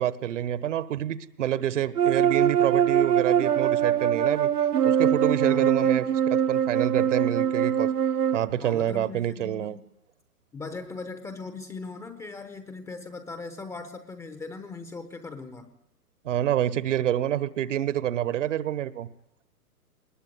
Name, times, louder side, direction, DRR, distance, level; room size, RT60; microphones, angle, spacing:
voice 1, 0.0-4.5 4.8-7.9 8.3-9.8 16.2-19.1, right 11 dB, 50° right, 17 dB, 1.3 m, -27 dB
sound 1, 2.0-8.4, right 9 dB, 75° right, 1.3 m, -23 dB
voice 2, 5.4-5.9 8.5-9.8 10.5-15.7, left 3 dB, 5° left, 10 dB, 0.8 m, -39 dB
20.5 x 20.0 x 9.3 m, 0.83 s
hypercardioid pair, 130°, 47 cm